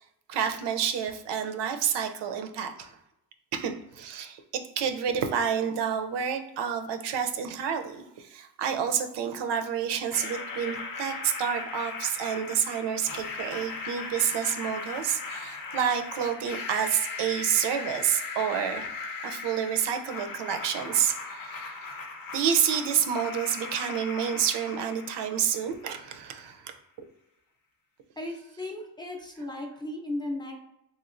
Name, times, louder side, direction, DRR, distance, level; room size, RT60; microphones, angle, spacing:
voice 1, 0.3-3.0 3.5-18.9 19.2-21.7 22.3-26.7, right 8 dB, 85° right, 5 dB, 0.5 m, -29 dB
sound 1, 10.1-26.1, left 4 dB, 55° left, 0.6 m, -38 dB
voice 2, 28.2-30.6, left 1 dB, 10° left, 1 dB, 0.5 m, -36 dB
3.0 x 2.8 x 2.5 m, 0.85 s
cardioid pair, 90°, 40 cm